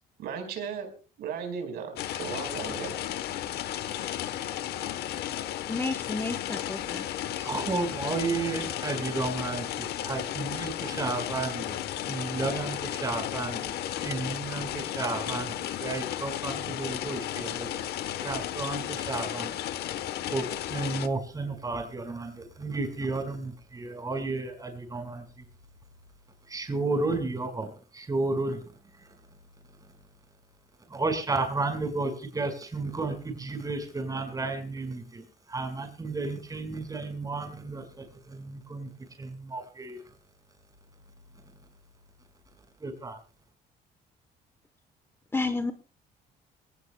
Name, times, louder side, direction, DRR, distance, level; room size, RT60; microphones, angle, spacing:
voice 1, 0.2-0.9 1.2-3.0, right 6 dB, 70° right, 5 dB, 4.8 m, -36 dB
sound 1, 2.0-21.1, left 12 dB, 70° left, 1.1 m, -34 dB
voice 2, 5.7-7.1 7.4-7.5 45.3-45.7, left 3 dB, 15° left, 10 dB, 1.0 m, -31 dB
voice 3, 7.3-13.7 14.0-17.9 18.2-19.6 20.3-25.5 26.5-28.6 30.9-40.0 42.8-43.2, right 3 dB, 20° right, 5 dB, 5.1 m, -33 dB
23.0 x 18.0 x 2.3 m, 0.36 s
cardioid pair, 110°, 17 cm